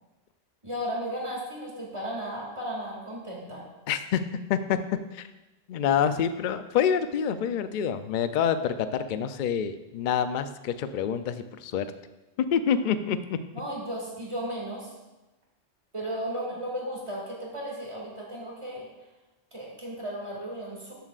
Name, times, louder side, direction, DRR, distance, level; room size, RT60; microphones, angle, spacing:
voice 1, 0.6-3.6 13.5-14.9 15.9-18.9 19.5-20.9, equal, 25° right, -3 dB, 2.3 m, -35 dB
voice 2, 3.9-4.2 4.5-4.8 5.1-5.3 5.7-11.9 12.4-13.4, left 8 dB, 60° left, 11 dB, 0.5 m, -27 dB
13.0 x 7.3 x 2.4 m, 1.1 s
omnidirectional pair, 1.2 m